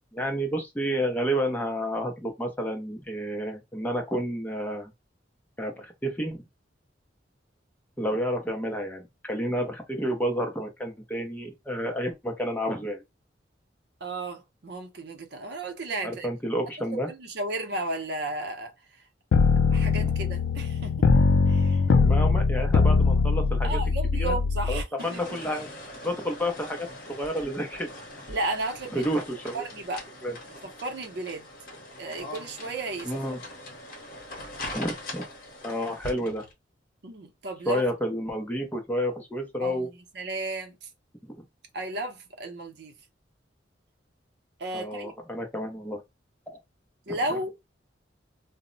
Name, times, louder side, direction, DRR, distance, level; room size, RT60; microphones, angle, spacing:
voice 1, 0.1-4.9 5.6-6.5 8.0-13.0 16.0-17.1 20.0-20.1 21.9-23.8 24.2-24.4 24.7-25.7 26.0-26.9 27.2-27.9 28.9-29.6 30.2-30.3 33.0-33.4 34.7-35.2 35.6-36.4 37.7-39.9 41.2-41.4 44.7-46.0 47.1-47.2, equal, 10° left, 0.5 m, -30 dB
voice 2, 14.0-16.3 17.1-18.7 19.7-20.9 21.5-21.8 23.6-25.2 28.3-29.1 29.5-30.1 30.8-31.5 32.0-33.1 37.0-37.8 39.6-40.9 41.7-42.9 44.6-45.1 47.1-47.5, right 2 dB, 60° right, 0.6 m, -33 dB
sound 1, 19.3-24.8, left 4 dB, 75° left, 0.4 m, -22 dB
sound 2, 25.0-36.5, left 1 dB, 45° left, 0.8 m, -42 dB
2.0 x 2.0 x 3.7 m
head